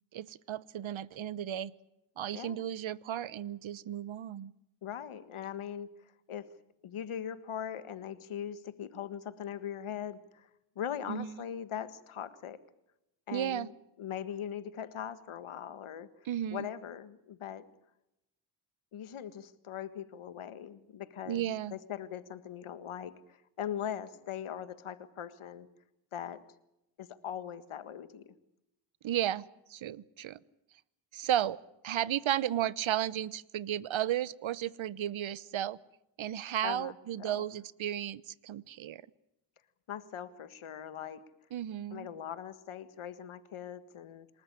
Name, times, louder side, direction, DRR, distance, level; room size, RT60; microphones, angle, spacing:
voice 1, 0.1-1.7 2.2-4.5 11.1-11.3 13.3-13.7 16.2-16.7 21.3-21.8 29.0-30.4 31.1-31.6 31.8-35.8 36.2-39.0 41.5-42.1, right 11 dB, 70° right, 20 dB, 0.9 m, -34 dB
voice 2, 2.3-2.7 4.8-5.9 6.3-6.5 6.8-10.5 10.8-12.6 13.3-13.7 14.0-16.1 16.5-17.6 18.9-25.7 26.1-26.4 27.0-28.3 36.6-37.4 39.9-41.2 41.9-44.3, left 9 dB, 80° left, 12 dB, 1.7 m, -40 dB
27.5 x 13.5 x 9.8 m, 0.87 s
cardioid pair, 70°, 49 cm